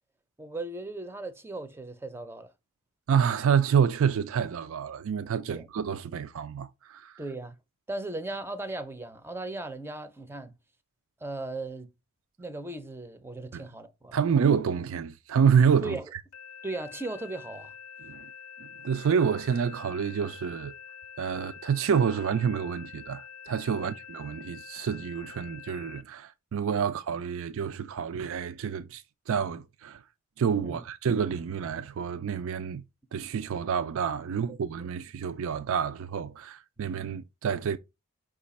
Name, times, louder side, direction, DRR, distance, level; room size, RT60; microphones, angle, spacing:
voice 1, 0.4-2.5 5.5-5.7 7.2-7.6 7.9-10.6 11.2-11.9 12.4-14.2 15.8-16.1 16.6-17.7 23.8-23.9 30.6-30.8, right 2 dB, 10° right, 0.5 m, -37 dB
voice 2, 3.1-7.2 13.5-13.6 14.1-16.2 18.0-18.3 18.6-20.7 21.2-30.0 30.4-32.8 33.1-37.8, right 7 dB, 65° right, 0.4 m, -28 dB
sound 1, 16.3-26.0, left 7 dB, 80° left, 0.5 m, -46 dB
5.1 x 2.4 x 4.0 m
head